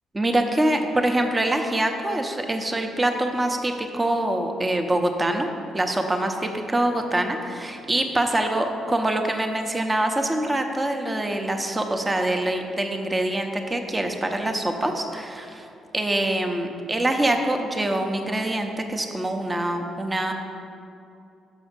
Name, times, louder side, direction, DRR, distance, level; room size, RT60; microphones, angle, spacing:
voice 1, 0.1-5.5 5.7-15.7 15.9-20.3, right 1 dB, 20° right, 4 dB, 0.7 m, -24 dB
6.2 x 5.6 x 5.1 m, 2.6 s
cardioid pair, 90°, 0 cm